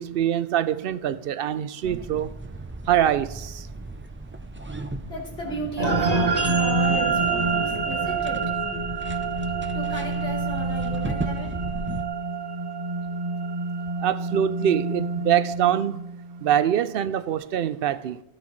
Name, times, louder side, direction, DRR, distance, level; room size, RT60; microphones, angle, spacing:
voice 1, 0.0-2.3 2.9-3.7 14.0-16.0 16.4-18.2, right 10 dB, 65° right, 0.7 m, -24 dB
sound 1, 1.8-12.0, right 2 dB, 15° right, 0.4 m, -36 dB
voice 2, 4.5-8.4 9.7-11.6, equal, 80° left, 3.7 m, -35 dB
sound 2, 5.8-16.4, right 4 dB, 40° right, 1.3 m, -27 dB
16.5 x 9.2 x 3.2 m
omnidirectional pair, 1.1 m